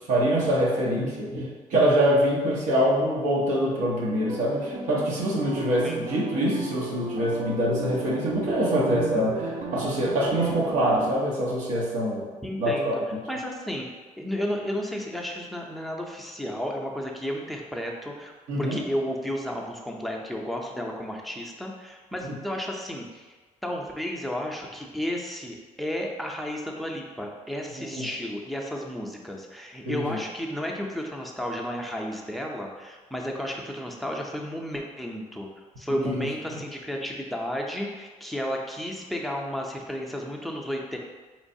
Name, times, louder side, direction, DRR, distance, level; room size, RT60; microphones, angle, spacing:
voice 1, 0.1-12.3 12.6-12.9 18.5-18.8 22.2-22.3 27.8-28.1 29.8-30.2 35.9-36.2, equal, 90° right, -5 dB, 0.9 m, -25 dB
sound 1, 3.9-11.2, right 4 dB, 70° right, 0.5 m, -35 dB
voice 2, 5.6-6.2 12.4-13.0 13.3-13.9 14.2-18.3 18.6-23.3 23.6-35.5 35.8-41.0, equal, ahead, 0 dB, 0.5 m, -32 dB
4.2 x 3.1 x 2.7 m, 1.3 s
cardioid pair, 130°, 13 cm